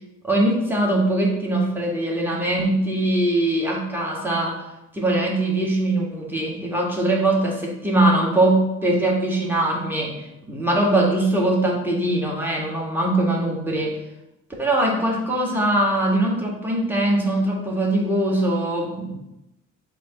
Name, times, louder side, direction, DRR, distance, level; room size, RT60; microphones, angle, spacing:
voice 1, 0.2-4.6 4.9-10.2 10.5-14.0 14.6-19.1, right 1 dB, 5° right, -3 dB, 1.8 m, -21 dB
7.1 x 3.0 x 5.4 m, 0.89 s
cardioid pair, 90°, 30 cm